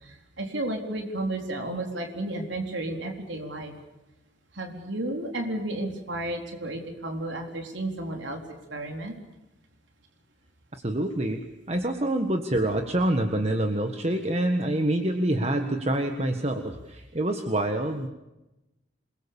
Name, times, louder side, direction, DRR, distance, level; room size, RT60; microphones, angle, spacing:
voice 1, 0.0-3.7 4.5-8.4 8.7-9.1, right 1 dB, 85° right, 3 dB, 4.0 m, -32 dB
voice 2, 10.7-11.4 11.7-18.1, right 1 dB, 35° right, 6 dB, 1.6 m, -26 dB
28.5 x 22.0 x 7.1 m, 0.99 s
head